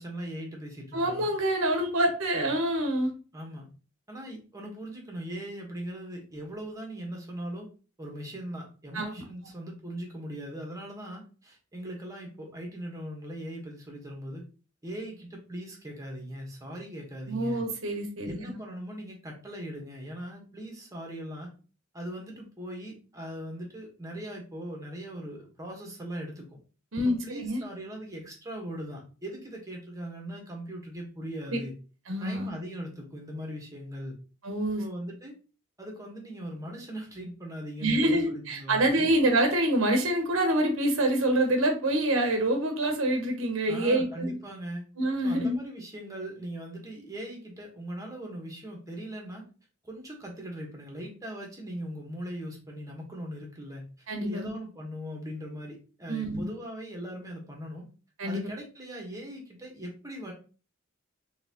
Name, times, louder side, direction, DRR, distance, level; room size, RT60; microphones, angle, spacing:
voice 1, 0.0-1.3 3.3-3.7 4.1-7.7 8.0-14.4 14.8-17.6 18.2-21.5 21.9-26.5 27.0-31.7 32.2-34.2 34.8-35.3 35.8-39.1 43.7-44.8 45.2-49.5 49.8-53.8 54.2-57.9 58.2-60.3, right 1 dB, 15° right, 0 dB, 1.1 m, -40 dB
voice 2, 0.9-3.1 8.9-9.1 17.3-18.3 26.9-27.6 32.1-32.5 34.4-34.8 37.8-44.4 45.0-45.6 54.1-54.5 56.1-56.5 58.2-58.5, right 1 dB, 70° right, 3 dB, 0.8 m, -26 dB
4.0 x 3.0 x 2.8 m, 0.36 s
head